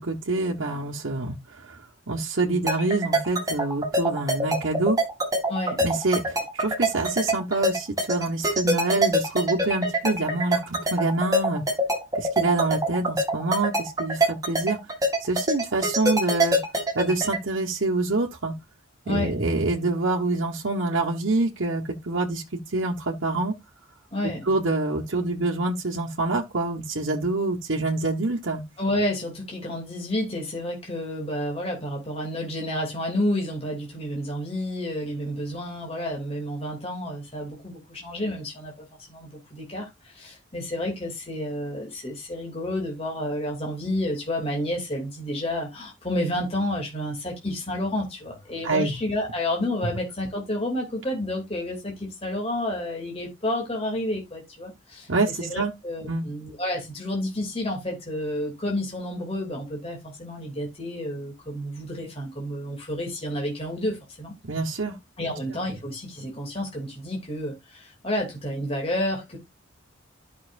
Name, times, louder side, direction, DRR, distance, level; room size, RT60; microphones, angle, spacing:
voice 1, 0.0-5.0 5.8-11.6 12.2-14.8 15.2-16.6 16.9-18.6 19.1-23.6 24.4-28.6 48.6-49.0 55.1-55.7 56.1-56.3 64.4-65.0 65.3-65.4, right 2 dB, 75° right, 1.3 m, -26 dB
sound 1, 2.7-17.4, right 1 dB, 20° right, 2.5 m, -23 dB
voice 2, 5.5-5.8 19.0-19.3 24.1-24.6 28.8-55.1 55.4-64.3 65.2-69.4, left 1 dB, 30° left, 2.7 m, -30 dB
13.0 x 5.9 x 2.6 m
head